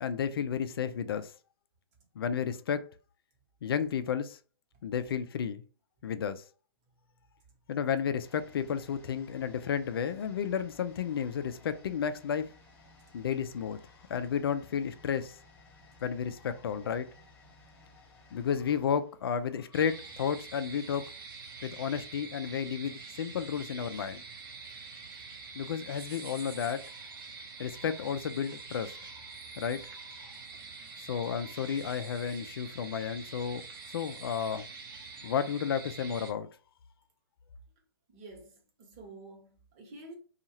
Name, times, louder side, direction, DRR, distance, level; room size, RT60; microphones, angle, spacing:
voice 1, 0.0-1.3 2.2-2.8 3.6-4.4 4.8-5.6 6.0-6.4 7.7-12.5 13.1-13.8 14.1-15.4 16.0-17.1 18.3-21.1 21.6-24.2 25.6-26.9 27.6-29.1 29.6-29.9 31.0-33.6 33.9-34.7 35.2-36.5, left 7 dB, 65° left, 0.4 m, -32 dB
sound 1, 8.2-19.9 20.2-20.3, left 2 dB, 10° left, 0.9 m, -58 dB
sound 2, 19.7-36.3, right 4 dB, 60° right, 0.8 m, -46 dB
voice 2, 38.1-40.1, right 2 dB, 35° right, 1.1 m, -49 dB
2.7 x 2.4 x 2.9 m
hypercardioid pair, 125°, 13 cm